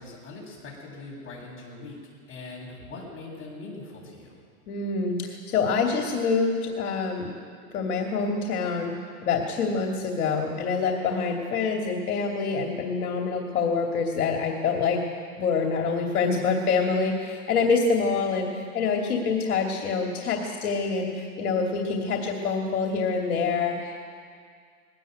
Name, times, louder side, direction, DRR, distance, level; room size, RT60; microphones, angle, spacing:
voice 1, 0.0-2.0 2.3-4.4, left 3 dB, 25° left, -2 dB, 7.6 m, -41 dB
voice 2, 4.7-7.3 7.7-15.0 15.4-24.1, left 4 dB, 70° left, 1 dB, 2.7 m, -26 dB
21.0 x 18.0 x 8.1 m, 2.1 s
hypercardioid pair, 135°, 45 cm